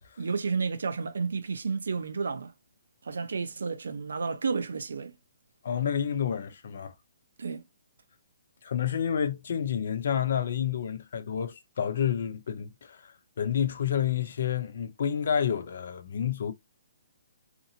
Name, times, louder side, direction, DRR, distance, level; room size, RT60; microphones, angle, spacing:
voice 1, 0.2-2.5 3.0-5.1 7.4-7.6, right 5 dB, 75° right, 0.6 m, -31 dB
voice 2, 5.6-6.9 8.6-13.1 13.4-16.5, left 8 dB, 45° left, 0.5 m, -29 dB
2.7 x 2.6 x 2.6 m
hypercardioid pair, 180°, 0 cm